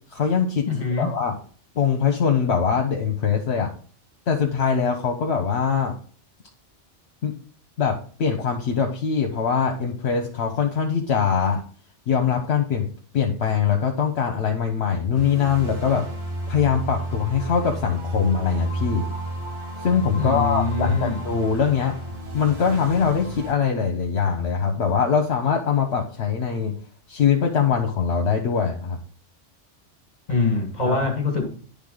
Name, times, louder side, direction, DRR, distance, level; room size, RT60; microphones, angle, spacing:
voice 1, 0.1-0.7 1.0-1.4 1.8-3.7 4.3-5.9 7.2-7.3 7.8-11.6 12.1-12.9 13.1-16.1 16.5-19.1 19.8-22.0 22.3-26.7 27.1-29.0 30.8-31.1, left 6 dB, 65° left, 3 dB, 1.0 m, -22 dB
voice 2, 0.6-1.1 20.2-21.2 30.3-31.5, left 3 dB, 40° left, 4 dB, 1.6 m, -24 dB
sound 1, 15.1-23.5, right 1 dB, 50° right, 1.4 m, -31 dB
10.0 x 3.5 x 3.8 m, 0.43 s
omnidirectional pair, 1.2 m